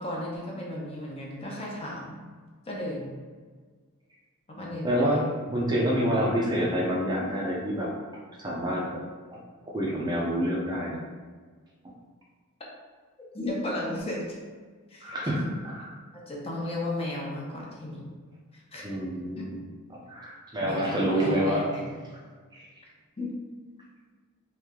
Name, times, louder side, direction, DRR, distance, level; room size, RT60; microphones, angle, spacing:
voice 1, 0.0-2.2 2.7-3.1 4.5-5.2 13.3-14.4 14.9-15.5 16.1-18.1 18.7-18.9 19.4-19.5 20.6-21.9 23.2-23.3, left 1 dB, 25° left, -3 dB, 0.7 m, -34 dB
voice 2, 4.8-7.9 8.4-8.9 9.7-11.0 15.0-15.4 15.6-15.8 18.8-19.6 19.9-21.6 22.5-22.7, equal, 20° right, -3 dB, 0.5 m, -27 dB
3.2 x 3.2 x 3.6 m, 1.5 s
head